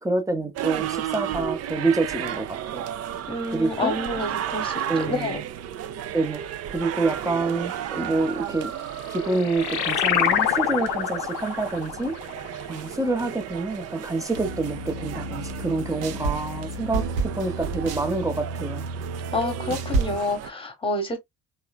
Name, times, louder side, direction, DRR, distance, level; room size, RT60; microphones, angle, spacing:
voice 1, 0.0-2.8 3.5-3.9 4.9-5.4 6.1-8.7 9.1-12.2 12.7-18.9, right 3 dB, 10° right, 0.7 m, -27 dB
sound 1, 0.5-20.5, right 10 dB, 40° right, 0.4 m, -34 dB
voice 2, 3.3-5.4 19.3-21.2, left 2 dB, 10° left, 1.1 m, -28 dB
sound 2, 8.8-13.8, left 10 dB, 60° left, 0.6 m, -27 dB
sound 3, 14.3-20.2, right 3 dB, 75° right, 0.8 m, -30 dB
3.1 x 2.1 x 2.2 m
hypercardioid pair, 55°, 43 cm